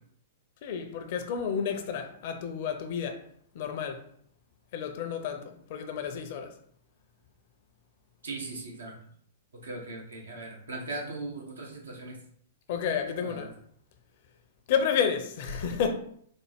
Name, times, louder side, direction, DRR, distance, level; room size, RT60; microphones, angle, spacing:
voice 1, 0.6-3.2 3.5-4.0 4.7-6.5 12.7-13.5 14.7-15.9, left 7 dB, 50° left, 6 dB, 0.6 m, -30 dB
voice 2, 8.2-8.9 9.6-12.2 13.2-13.4, right 2 dB, 75° right, 0 dB, 1.1 m, -39 dB
4.1 x 2.1 x 3.4 m, 0.64 s
figure-of-eight pair, 105°, 0 cm